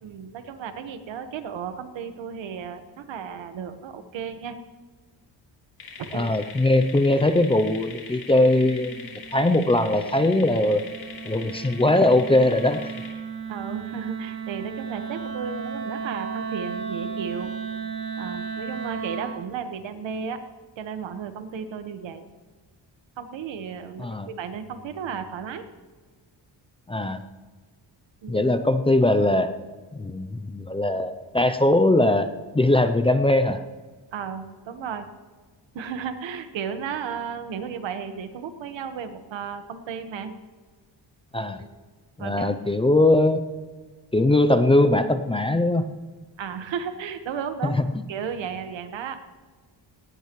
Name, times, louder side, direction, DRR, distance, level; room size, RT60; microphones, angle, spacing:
voice 1, 0.0-4.6 6.0-6.3 13.5-17.5 18.2-20.4 20.8-22.3 23.2-25.6 28.2-28.4 34.1-35.1 35.7-40.3 41.6-41.7 42.2-42.5 46.4-47.8 48.1-49.2, right 7 dB, 85° right, 8 dB, 1.5 m, -34 dB
sound 1, 5.8-13.1, left 5 dB, 55° left, 4.6 m, -42 dB
voice 2, 6.1-10.8 11.2-12.9 24.0-24.3 26.9-27.2 28.3-29.5 29.9-33.6 41.3-41.6 42.2-43.4 44.1-45.9 47.6-48.0, left 1 dB, 15° left, 9 dB, 0.5 m, -21 dB
Wind instrument woodwind instrument, 7.9-19.4, right 6 dB, 55° right, 2.8 m, -35 dB
18.5 x 18.0 x 3.1 m, 1.4 s
wide cardioid pair, 180°, 44 cm